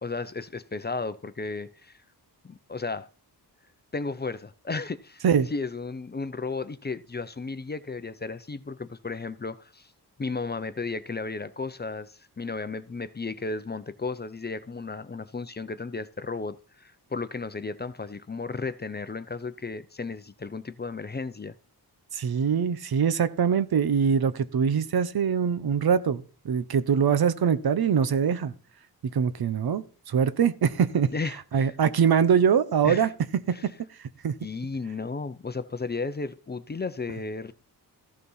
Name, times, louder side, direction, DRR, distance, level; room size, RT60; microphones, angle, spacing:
voice 1, 0.0-2.0 2.4-3.1 3.9-5.2 5.5-9.9 10.2-21.5 31.1-31.8 32.8-33.1 33.5-33.7 34.4-37.5, left 4 dB, 25° left, 0.6 m, -34 dB
voice 2, 22.1-28.5 29.1-31.1 31.5-33.1 33.5-33.7 34.2-34.3, right 7 dB, 65° right, 0.9 m, -23 dB
14.5 x 6.8 x 5.5 m
wide cardioid pair, 125°, 39 cm